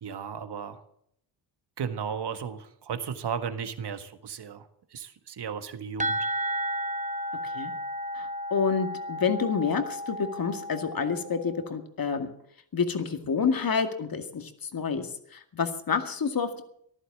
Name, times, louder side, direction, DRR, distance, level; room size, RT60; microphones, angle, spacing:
voice 1, 0.0-0.8 1.8-4.7 4.9-6.2, right 7 dB, 55° right, 10 dB, 1.7 m, -35 dB
sound 1, 6.0-11.6, equal, 15° right, 1.2 m, -33 dB
voice 2, 8.1-12.3 12.7-15.1 15.3-16.6, left 6 dB, 45° left, 7 dB, 2.2 m, -28 dB
14.5 x 11.5 x 7.4 m, 0.69 s
supercardioid pair, 60°, 47 cm